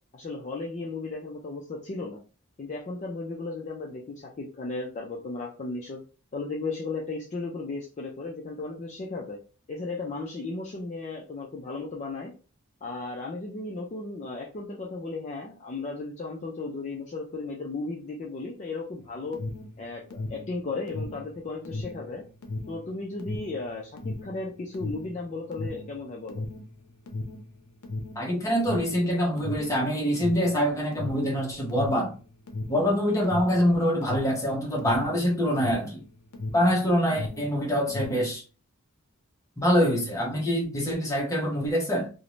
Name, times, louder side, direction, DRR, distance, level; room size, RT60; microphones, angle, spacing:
voice 1, 0.1-2.2 2.6-6.0 6.3-9.4 9.7-12.3 12.8-19.4 19.8-22.2 22.7-26.4, left 3 dB, 35° left, 0.4 m, -35 dB
Alarm, 19.0-36.8 37.0-38.3, left 2 dB, 90° left, 0.6 m, -36 dB
voice 2, 28.2-32.1 32.7-36.0 36.5-38.4 39.6-42.1, equal, 15° left, 0.7 m, -25 dB
2.5 x 2.0 x 2.9 m
head